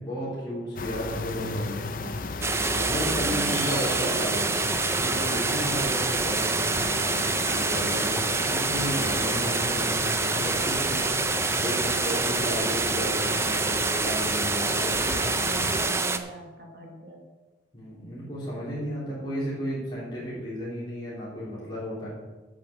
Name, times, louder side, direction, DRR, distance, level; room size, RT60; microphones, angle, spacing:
voice 1, 0.0-2.1 2.5-4.6 5.0-7.0 7.5-11.0 11.6-15.3 15.7-15.9 17.7-22.1, equal, 25° left, -9 dB, 3.8 m, -34 dB
sound 1, 0.8-15.9, left 3 dB, 45° left, 0.6 m, -35 dB
sound 2, 2.4-16.2, right 3 dB, 15° right, 0.5 m, -26 dB
voice 2, 3.2-3.6 15.3-17.3, right 2 dB, 55° right, 0 dB, 1.5 m, -41 dB
8.7 x 7.7 x 7.2 m, 1.2 s
head